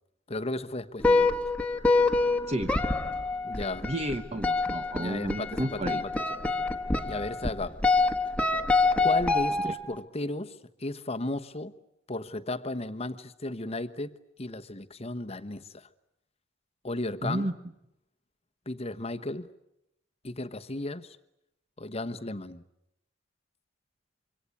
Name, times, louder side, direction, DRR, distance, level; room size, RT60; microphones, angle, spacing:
voice 1, 0.3-1.3 3.4-3.9 5.0-6.2 7.0-7.8 9.0-11.7 12.1-15.9 16.8-17.5 18.7-19.5 20.2-21.2 21.8-22.6, left 2 dB, 30° left, 9 dB, 1.1 m, -35 dB
sound 1, 1.0-10.0, left 3 dB, 5° left, 1.5 m, -26 dB
voice 2, 3.8-6.0 17.2-17.5, right 1 dB, 35° right, 7 dB, 1.1 m, -31 dB
26.0 x 24.5 x 8.5 m, 0.83 s
head